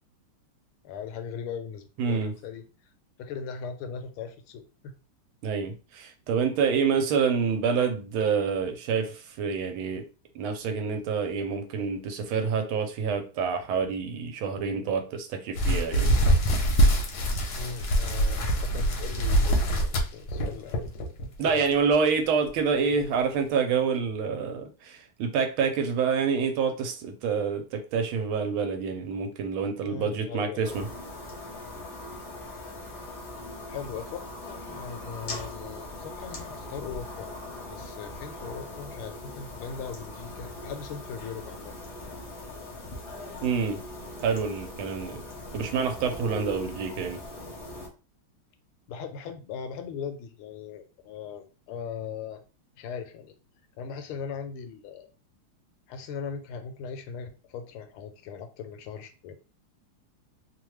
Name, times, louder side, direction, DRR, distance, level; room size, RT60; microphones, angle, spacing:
voice 1, 0.8-2.6 3.2-4.9 17.5-20.8 21.4-21.7 29.8-30.6 32.4-32.5 33.7-37.3 37.7-41.7 46.3-46.5 48.9-52.4 52.8-53.3 53.8-55.1 55.9-59.4, left 6 dB, 80° left, 7 dB, 1.4 m, -39 dB
voice 2, 2.0-2.3 5.4-10.1 10.3-16.1 21.4-30.9 43.4-43.8 44.2-45.2 45.5-47.2, right 6 dB, 75° right, 6 dB, 1.4 m, -27 dB
sound 1, 15.6-21.3 21.7-21.9 22.5-22.6 23.0-23.1, right 1 dB, 65° left, 1.1 m, -24 dB
sound 2, 30.6-47.9, left 1 dB, 50° left, 0.8 m, -40 dB
3.4 x 2.2 x 3.0 m, 0.33 s
omnidirectional pair, 2.4 m